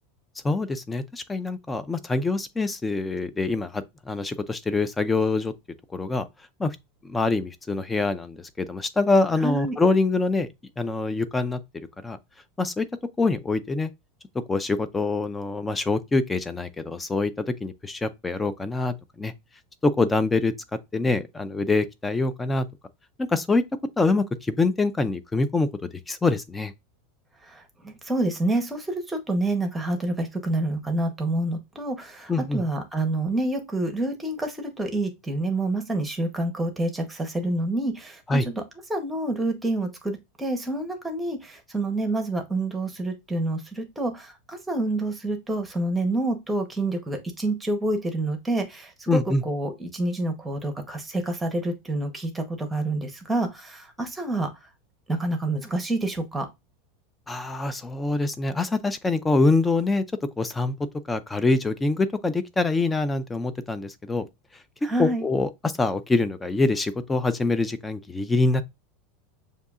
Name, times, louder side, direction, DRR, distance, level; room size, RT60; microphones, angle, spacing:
voice 1, 0.4-5.5 5.9-6.3 6.6-6.8 7.0-10.5 10.8-11.6 12.0-12.2 12.6-12.9 13.2-13.9 14.5-19.3 19.8-20.5 20.9-22.7 23.2-23.6 24.0-25.7 26.1-26.7 32.3-32.6 38.3-38.5 49.1-49.4 57.3-60.0 60.4-60.7 61.1-64.3 65.0-68.6, left 3 dB, 10° left, 0.4 m, -25 dB
voice 2, 9.4-9.8 27.4-38.6 38.9-54.5 55.1-56.5 64.8-65.3, right 2 dB, 10° right, 0.9 m, -28 dB
6.6 x 2.7 x 2.4 m
supercardioid pair, 145°, 0 cm